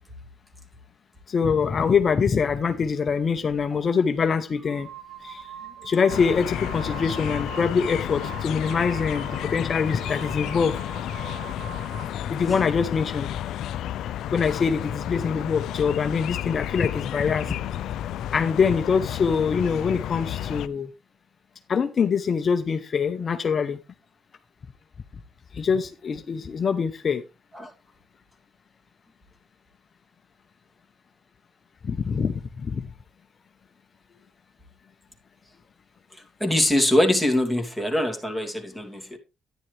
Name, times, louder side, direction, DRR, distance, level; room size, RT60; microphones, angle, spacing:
voice 1, 1.3-4.9 5.2-5.4 5.8-10.8 12.3-13.3 14.3-17.5 18.3-20.9 21.7-23.8 25.5-27.2 31.8-32.3 32.6-32.8, left 6 dB, 45° left, 0.8 m, -24 dB
sound 1, 3.5-3.7 4.5-12.2, right 8 dB, 35° right, 2.5 m, -42 dB
sound 2, 6.1-20.7, left 11 dB, 80° left, 0.5 m, -31 dB
voice 2, 36.1-39.2, left 1 dB, ahead, 2.7 m, -23 dB
10.5 x 10.0 x 3.3 m
cardioid pair, 90°, 0 cm